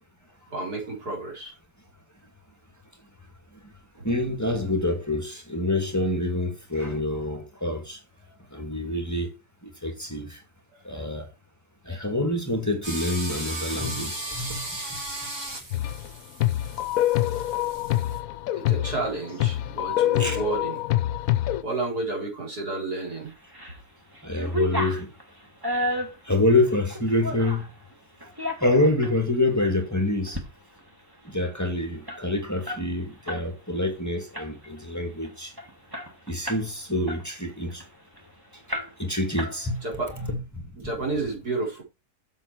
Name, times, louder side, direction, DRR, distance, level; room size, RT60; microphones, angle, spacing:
voice 1, 0.5-1.5 4.0-4.1 10.7-11.0 18.6-20.8 21.6-23.3 39.8-40.2 40.8-41.8, right 3 dB, 90° right, 4.4 m, -31 dB
voice 2, 4.0-8.0 8.5-9.3 9.6-10.4 10.8-11.3 11.9-14.6 20.2-20.4 24.2-25.1 26.2-27.6 28.6-30.4 31.2-35.5 36.3-37.8 39.0-39.8 40.2-40.6, left 1 dB, 10° left, 2.1 m, -26 dB
sound 1, 12.8-18.2, right 1 dB, 60° right, 3.8 m, -36 dB
sound 2, 15.7-16.1 16.4-21.6, left 14 dB, 70° left, 1.0 m, -25 dB
sound 3, 23.3-23.8 24.1-27.7 28.2-29.2 29.6-29.8 30.2-30.5 30.8-30.9 31.1-33.5 33.8-34.0 34.3-34.8 35.2-35.3 35.6-36.7 37.1-38.2 38.7-39.1 39.4-40.0, left 1 dB, 15° right, 2.1 m, -32 dB
7.9 x 7.4 x 4.6 m
omnidirectional pair, 1.6 m